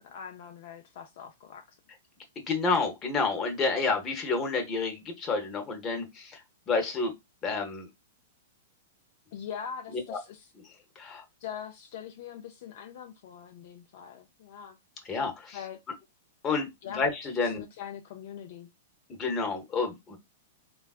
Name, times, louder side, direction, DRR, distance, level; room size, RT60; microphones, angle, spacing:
voice 1, 0.0-1.8 9.3-10.5 11.4-14.8 15.5-15.8 16.8-17.0 17.4-18.7, left 8 dB, 60° left, 0.4 m, -42 dB
voice 2, 2.5-6.4 6.7-7.1 7.4-7.9 9.9-10.2 11.0-11.2 15.1-15.6 16.4-17.6 19.2-20.2, left 4 dB, 25° left, 0.8 m, -29 dB
3.3 x 2.3 x 2.3 m
hypercardioid pair, 135°, 0 cm